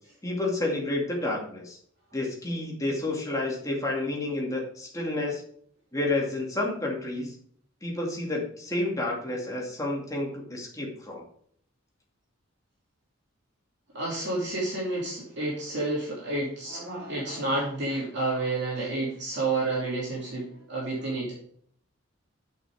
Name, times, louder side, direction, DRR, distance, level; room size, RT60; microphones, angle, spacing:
voice 1, 0.2-1.8 2.1-5.4 5.9-7.4 7.8-11.2, left 2 dB, 15° left, -1 dB, 2.3 m, -30 dB
voice 2, 13.9-21.4, right 2 dB, 55° right, -5 dB, 3.0 m, -30 dB
9.0 x 6.1 x 4.8 m, 0.62 s
head